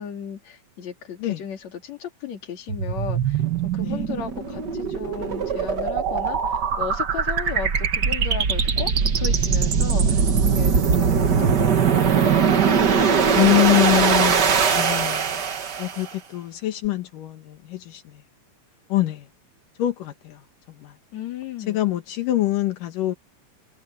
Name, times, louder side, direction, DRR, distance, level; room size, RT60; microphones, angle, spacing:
voice 1, 0.0-10.3 10.6-12.4 12.9-13.3 21.1-21.8, left 7 dB, 60° left, 3.9 m, -35 dB
sound 1, 2.7-16.1, right 6 dB, 45° right, 1.5 m, -21 dB
sound 2, 10.1-13.3, right 1 dB, 20° left, 5.7 m, -35 dB
voice 2, 13.3-15.4 15.8-18.2 18.9-19.3 19.8-20.4 20.7-21.0 21.7-23.2, left 16 dB, 85° left, 3.0 m, -24 dB
omnidirectional pair, 3.7 m